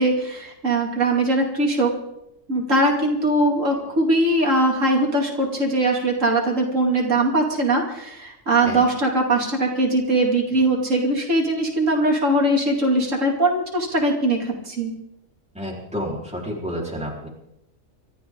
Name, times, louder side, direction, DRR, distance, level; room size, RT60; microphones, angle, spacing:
voice 1, 0.0-1.9 2.5-14.9, right 1 dB, 75° right, 0 dB, 3.1 m, -21 dB
voice 2, 15.5-17.3, equal, 5° right, -3 dB, 4.3 m, -30 dB
25.5 x 13.5 x 3.9 m, 0.82 s
omnidirectional pair, 1.3 m